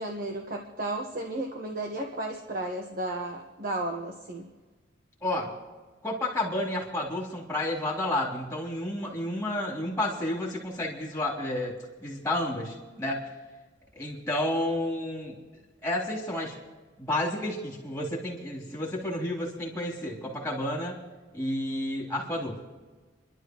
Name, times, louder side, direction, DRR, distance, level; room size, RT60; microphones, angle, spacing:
voice 1, 0.0-4.4, right 2 dB, 50° right, 2 dB, 1.4 m, -33 dB
voice 2, 6.0-13.2 13.9-15.4 15.8-16.5 17.0-21.0 21.3-22.6, left 1 dB, 10° left, -5 dB, 3.4 m, -31 dB
29.5 x 12.0 x 3.2 m, 1.3 s
head